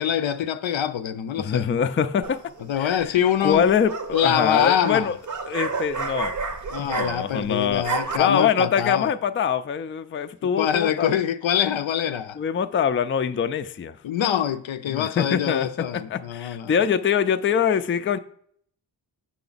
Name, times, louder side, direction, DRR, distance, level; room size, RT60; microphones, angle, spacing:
voice 1, 0.0-1.7 2.7-3.7 4.1-5.1 6.7-9.1 10.6-12.4 14.0-16.7, left 9 dB, 80° left, 0.5 m, -24 dB
voice 2, 1.4-2.4 2.8-3.2 3.4-5.2 5.5-6.4 6.8-11.1 12.4-14.0 14.9-18.2, left 7 dB, 30° left, 0.3 m, -24 dB
sound 1, 2.2-2.7 3.5-7.5 7.7-8.2, right 4 dB, 40° right, 0.6 m, -30 dB
6.5 x 5.9 x 3.9 m
wide cardioid pair, 60°, 46 cm